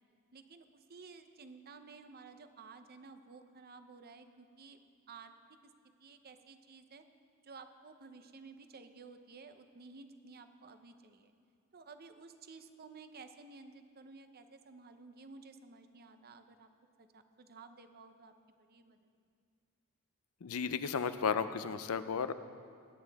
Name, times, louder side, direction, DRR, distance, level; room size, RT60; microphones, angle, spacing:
voice 1, 0.3-4.8 5.1-5.3 6.0-7.0 7.4-11.3 11.7-16.7 17.0-18.3 18.6-19.0, right 4 dB, 45° right, 9 dB, 0.7 m, -54 dB
voice 2, 20.4-22.3, left 6 dB, 85° left, 12 dB, 0.5 m, -34 dB
20.5 x 9.7 x 3.5 m, 2.2 s
head